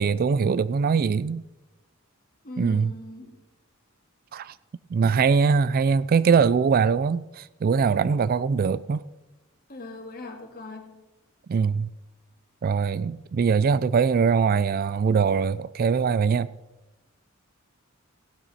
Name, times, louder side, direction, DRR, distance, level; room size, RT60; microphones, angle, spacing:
voice 1, 0.0-1.4 2.6-2.9 4.3-4.5 4.9-9.0 11.5-11.9 12.6-16.5, right 5 dB, 45° right, 0.3 m, -22 dB
voice 2, 2.4-3.4 9.7-11.0, left 2 dB, 45° left, 2.1 m, -40 dB
16.0 x 12.0 x 4.2 m
head